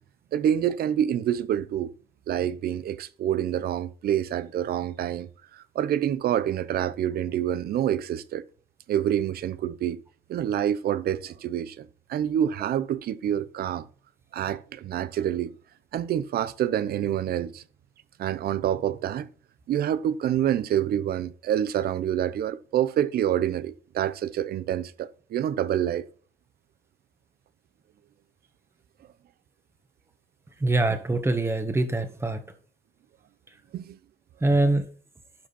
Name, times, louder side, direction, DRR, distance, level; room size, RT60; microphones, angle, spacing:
voice 1, 0.3-1.9 2.3-8.4 8.9-10.0 10.3-13.9 14.3-15.5 15.9-17.6 18.2-19.3 19.7-26.0 33.7-34.0, right 10 dB, 65° right, 0.8 m, -27 dB
voice 2, 30.6-32.4 34.4-34.8, right 2 dB, 15° right, 1.6 m, -23 dB
12.0 x 5.2 x 4.3 m
cardioid pair, 120°, 17 cm